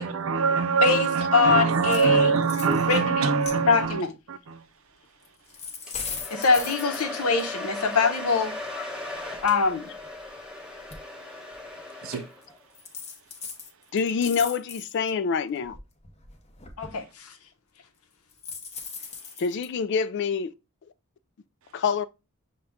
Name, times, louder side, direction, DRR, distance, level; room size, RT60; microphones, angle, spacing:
voice 1, 0.0-4.0 4.3-4.6 12.0-12.2, right 5 dB, 65° right, 0.5 m, -23 dB
voice 2, 0.8-2.4 2.9-3.4 3.7-4.1 6.3-8.5 9.4-9.9 16.8-17.3, left 5 dB, 80° left, 0.8 m, -23 dB
sound 1, 1.9-2.1 2.4-3.0 3.4-3.9 5.2-7.4 8.6-8.7 9.1-10.4 10.9-11.0 11.5-11.7 12.4-12.5 12.7-15.1 15.6-17.0 18.3-19.7, left 5 dB, 30° left, 0.8 m, -39 dB
Domestic sounds home sounds, 5.9-12.6, left 2 dB, 5° right, 0.9 m, -37 dB
voice 3, 13.9-15.8 19.4-20.5 21.7-22.0, left 5 dB, 50° left, 0.3 m, -26 dB
6.4 x 2.3 x 3.5 m
head